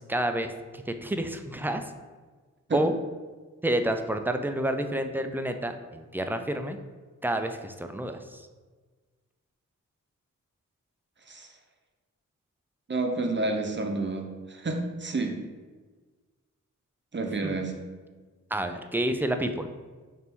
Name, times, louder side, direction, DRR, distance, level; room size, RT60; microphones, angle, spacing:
voice 1, 0.0-1.8 2.7-2.9 3.6-6.8 7.2-8.5 17.4-17.5 18.5-19.7, right 1 dB, 5° right, 7 dB, 0.3 m, -29 dB
voice 2, 12.9-15.4 17.1-17.7, right 2 dB, 35° right, 3 dB, 0.7 m, -30 dB
3.4 x 2.6 x 4.4 m, 1.4 s
cardioid pair, 45°, 33 cm